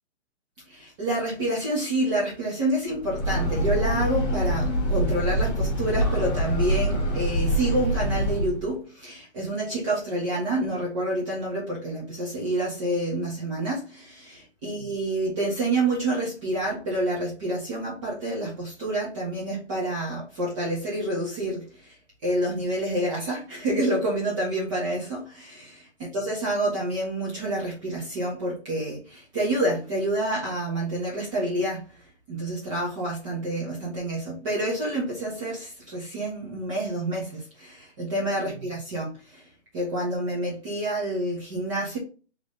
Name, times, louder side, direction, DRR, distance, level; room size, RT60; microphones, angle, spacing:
voice 1, 0.7-22.0 22.2-25.9 26.1-31.8 32.3-39.4 39.7-42.0, right 1 dB, 25° right, 1.3 m, -28 dB
Breathing / Train, 2.9-8.7, equal, 25° left, 1.2 m, -25 dB
3.5 x 3.4 x 3.6 m
hypercardioid pair, 165°, 35 cm